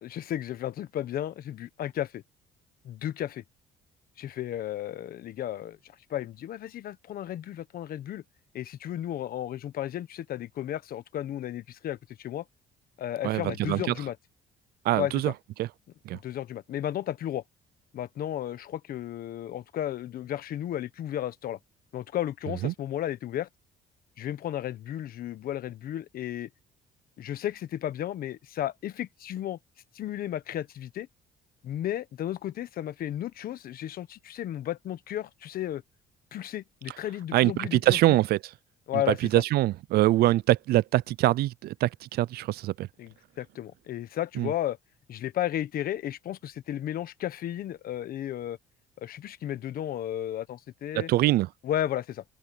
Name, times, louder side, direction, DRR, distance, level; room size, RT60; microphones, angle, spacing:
voice 1, 0.0-2.2 2.8-3.4 4.2-5.8 6.1-8.2 8.5-12.4 13.0-14.1 14.9-15.1 16.1-17.4 17.9-21.6 21.9-23.5 24.2-26.5 27.2-29.6 29.9-31.1 31.6-35.8 36.3-38.1 38.9-39.2 43.0-44.8 45.1-48.6 49.0-51.1 51.6-52.2, left 12 dB, 60° left, 1.3 m, -33 dB
voice 2, 13.2-13.8 14.8-15.3 15.6-15.7 16.0-16.2 22.6-22.7 37.3-38.5 38.9-42.9 44.4-44.5 50.9-51.5, right 16 dB, 70° right, 0.5 m, -24 dB
open air
cardioid pair, 110°, 17 cm